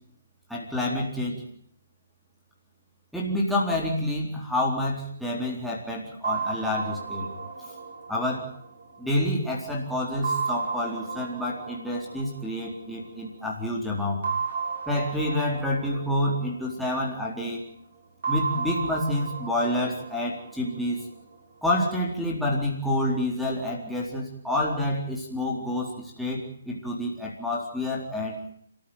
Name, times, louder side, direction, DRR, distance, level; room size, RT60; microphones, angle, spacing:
voice 1, 0.5-1.4 3.1-7.3 7.6-7.7 8.1-8.5 9.0-14.2 14.9-17.6 18.3-21.0 21.6-28.4, left 1 dB, ahead, -5 dB, 4.0 m, -28 dB
sound 1, 6.2-9.6 10.2-13.2 14.2-17.3 18.2-21.3, right 5 dB, 55° right, 6.9 m, -34 dB
29.0 x 14.5 x 9.3 m, 0.67 s
figure-of-eight pair, 140°, 0 cm